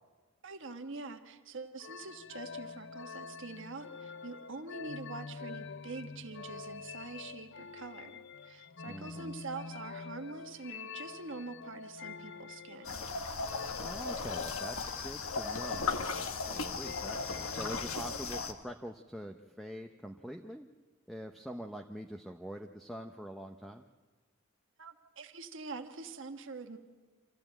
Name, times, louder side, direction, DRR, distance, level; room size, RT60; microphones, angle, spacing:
voice 1, 0.4-13.0 24.8-26.8, right 3 dB, 60° right, 6 dB, 1.4 m, -45 dB
sound 1, 1.8-18.2, left 5 dB, 55° left, 0.6 m, -46 dB
voice 2, 8.8-9.3 13.8-20.7 21.1-23.8, equal, ahead, 4 dB, 0.7 m, -44 dB
sound 2, 12.8-18.5, left 4 dB, 75° left, 1.4 m, -36 dB
26.0 x 14.5 x 8.9 m, 1.4 s
head